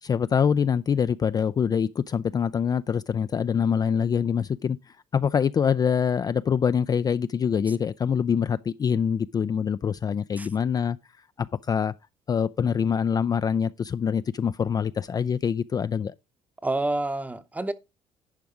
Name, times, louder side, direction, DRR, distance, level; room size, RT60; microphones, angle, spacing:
voice 1, 0.0-4.8 5.1-11.0 11.4-11.9 12.3-16.1, left 7 dB, 30° left, 0.4 m, -25 dB
voice 2, 16.6-17.7, right 2 dB, 10° right, 0.8 m, -28 dB
11.0 x 4.7 x 5.0 m
cardioid pair, 100°, 12 cm